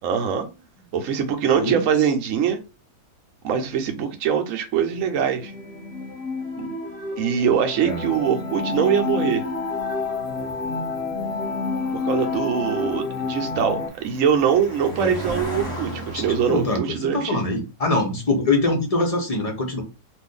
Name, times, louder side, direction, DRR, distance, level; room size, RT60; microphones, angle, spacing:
voice 1, 0.0-0.5 0.9-2.6 3.4-5.5 6.6-6.7 7.2-9.5 11.9-17.4, right 8 dB, 65° right, 1.0 m, -23 dB
sound 1, 4.9-13.9, left 4 dB, 30° left, 1.0 m, -29 dB
Cricket, 7.9-16.8, right 1 dB, 5° left, 1.1 m, -37 dB
voice 2, 15.9-19.8, left 2 dB, 45° left, 0.5 m, -24 dB
2.5 x 2.5 x 3.7 m
omnidirectional pair, 1.6 m